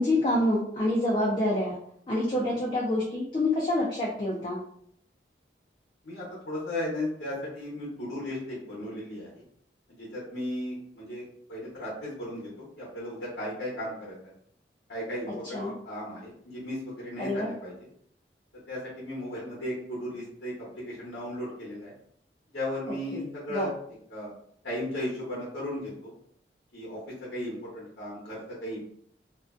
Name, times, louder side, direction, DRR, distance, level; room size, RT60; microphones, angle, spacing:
voice 1, 0.0-1.7 2.1-4.6 15.3-15.7 17.2-17.5 23.1-23.7, left 1 dB, 30° left, -4 dB, 0.4 m, -27 dB
voice 2, 6.0-9.4 10.0-14.1 14.9-17.7 18.7-21.9 22.5-23.7 24.1-24.3 24.6-26.1 26.7-27.0 27.3-28.8, left 1 dB, 80° left, -7 dB, 0.9 m, -36 dB
2.4 x 2.1 x 2.4 m, 0.66 s
head